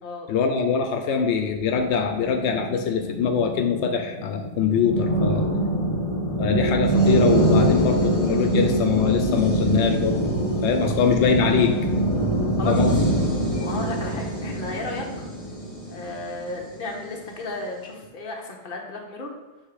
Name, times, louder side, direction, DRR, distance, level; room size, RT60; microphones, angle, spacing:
voice 1, 0.3-5.4 6.4-10.2 10.6-11.8 12.7-13.1, left 6 dB, 90° left, 5 dB, 0.9 m, -23 dB
sound 1, 1.5-17.0, right 1 dB, 35° left, 1.0 m, -24 dB
voice 2, 12.6-13.0 13.6-15.1 15.9-19.3, left 2 dB, 50° left, 1 dB, 1.0 m, -34 dB
6.5 x 3.3 x 4.8 m, 1.1 s
omnidirectional pair, 1.1 m